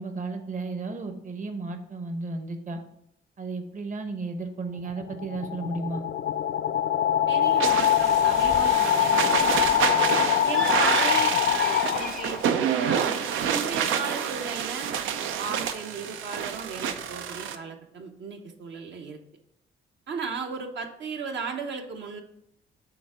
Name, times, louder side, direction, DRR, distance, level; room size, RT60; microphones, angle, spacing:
voice 1, 0.0-2.8 3.4-6.0, right 3 dB, 40° right, 6 dB, 1.0 m, -33 dB
sound 1, 4.8-12.6, left 10 dB, 65° left, 0.5 m, -24 dB
voice 2, 7.3-9.8 10.4-14.9 15.4-19.2 20.1-22.2, right 5 dB, 65° right, 4 dB, 1.0 m, -36 dB
Bird, 7.4-12.4, equal, ahead, 0.6 m, -40 dB
sound 2, 7.6-17.6, right 8 dB, 85° right, 0.5 m, -28 dB
6.9 x 3.6 x 4.9 m, 0.77 s
cardioid pair, 90°, 20 cm